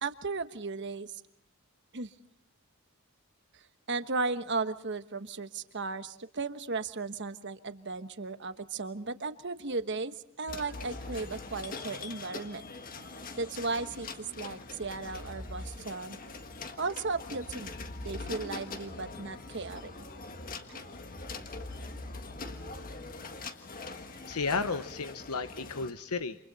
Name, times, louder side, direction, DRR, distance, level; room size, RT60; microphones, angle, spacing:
voice 1, 0.0-1.2 1.9-2.1 3.9-12.6 13.4-14.1 14.4-16.2 16.8-17.8 18.0-19.9 20.7-20.8, right 3 dB, 55° right, 10 dB, 1.2 m, -35 dB
sound 1, 10.5-25.9, left 3 dB, 40° left, 1.6 m, -42 dB
voice 2, 24.3-26.4, left 4 dB, 90° left, 10 dB, 1.0 m, -33 dB
28.5 x 27.0 x 4.2 m, 0.66 s
head